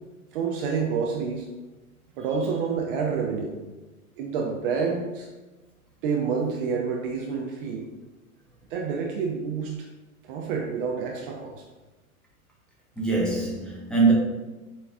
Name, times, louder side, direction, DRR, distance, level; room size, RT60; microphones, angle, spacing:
voice 1, 0.3-1.5 2.2-3.5 4.2-5.3 6.0-7.9 8.7-9.8 10.2-11.6, right 5 dB, 40° right, 0.6 m, -28 dB
voice 2, 13.0-14.1, right 4 dB, ahead, 0.8 m, -23 dB
6.7 x 3.2 x 2.3 m
figure-of-eight pair, 100°, 44 cm